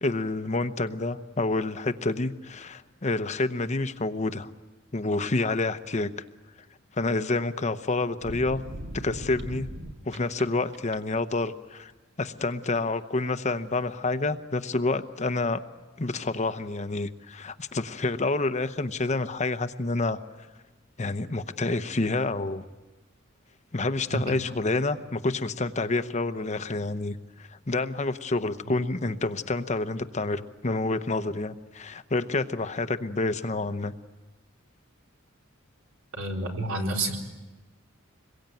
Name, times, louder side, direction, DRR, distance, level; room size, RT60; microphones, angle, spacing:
voice 1, 0.0-4.5 4.9-6.1 6.9-8.6 8.9-9.7 10.0-11.9 12.2-15.6 16.0-20.2 21.0-22.6 23.7-33.9, left 2 dB, 35° left, 10 dB, 0.9 m, -28 dB
sound 1, 8.2-10.4 10.7-11.2, right 1 dB, 60° right, 1.8 m, -38 dB
voice 2, 36.1-37.2, right 2 dB, 80° right, 1 dB, 4.2 m, -29 dB
26.0 x 22.5 x 9.2 m, 1.2 s
head